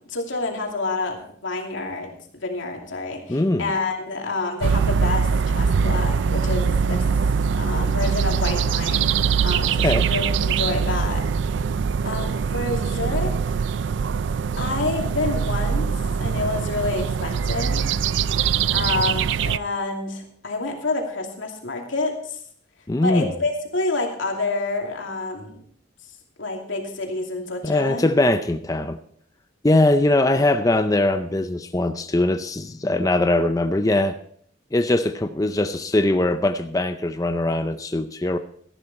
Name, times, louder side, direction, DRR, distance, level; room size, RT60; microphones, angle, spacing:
voice 1, 0.0-7.0 7.6-9.2 9.4-11.3 12.0-13.6 14.6-15.9 16.2-17.8 18.7-22.4 23.0-25.6 26.4-28.1 30.2-30.5, left 3 dB, 90° left, 1 dB, 2.7 m, -28 dB
voice 2, 3.3-3.7 9.8-10.1 22.9-23.3 27.6-29.0 29.6-34.2 34.7-38.4, left 1 dB, 20° left, 9 dB, 0.5 m, -21 dB
sound 1, 4.6-19.6, right 6 dB, 70° right, 0.4 m, -22 dB
13.5 x 11.5 x 4.2 m, 0.62 s
head